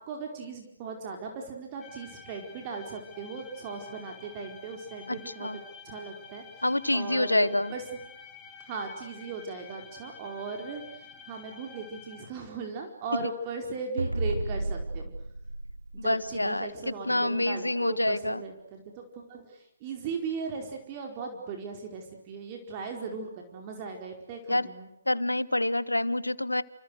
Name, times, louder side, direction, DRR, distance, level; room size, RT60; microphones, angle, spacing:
voice 1, 0.0-5.5 5.8-7.8 8.6-15.1 16.0-24.9, right 4 dB, 30° right, 3 dB, 4.8 m, -38 dB
sound 1, 1.8-12.3, left 5 dB, 10° left, 6.4 m, -49 dB
voice 2, 5.1-5.6 6.6-7.7 16.0-18.4 24.5-24.7 25.1-26.6, left 1 dB, 85° left, 16 dB, 1.6 m, -27 dB
sound 2, 14.0-16.7, right 2 dB, 90° right, 2.6 m, -33 dB
29.5 x 29.0 x 6.6 m, 0.77 s
figure-of-eight pair, 135°, 0 cm